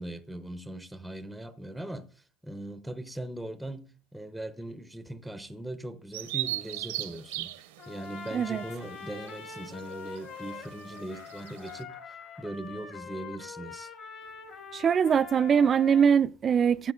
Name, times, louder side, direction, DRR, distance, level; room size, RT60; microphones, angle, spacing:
voice 1, 0.0-13.9, right 1 dB, ahead, 0.7 m, -40 dB
Bird vocalization bird call bird song, 6.1-11.8, right 16 dB, 85° right, 0.8 m, -39 dB
Trumpet, 7.8-16.1, left 5 dB, 45° left, 2.4 m, -44 dB
voice 2, 8.3-8.6 14.7-16.9, right 7 dB, 30° right, 0.3 m, -22 dB
13.5 x 7.4 x 2.4 m
supercardioid pair, 105°, 0 cm